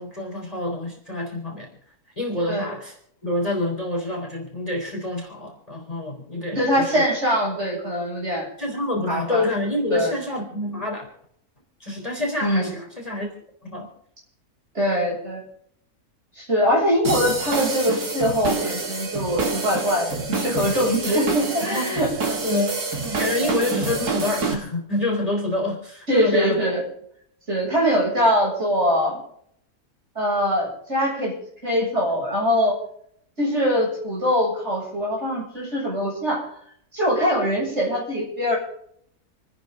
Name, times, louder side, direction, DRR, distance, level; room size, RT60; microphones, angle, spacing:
voice 1, 0.0-1.7 2.2-2.9 3.2-7.1 8.6-11.1 11.8-13.3 13.6-13.9 21.6-22.0 22.4-26.6, left 1 dB, 25° left, 0 dB, 4.1 m, -27 dB
voice 2, 6.5-8.5 9.1-9.4 9.9-10.1 12.4-12.7 14.7-15.4 16.4-22.1 22.5-22.7 23.4-23.5 26.1-26.8 27.5-29.2 30.1-31.3 31.6-32.7 33.4-36.6 36.9-38.6, equal, 45° right, -3 dB, 7.9 m, -22 dB
sound 1, 17.0-24.5, right 4 dB, 75° right, 2.7 m, -27 dB
28.5 x 9.8 x 3.9 m, 0.66 s
omnidirectional pair, 1.6 m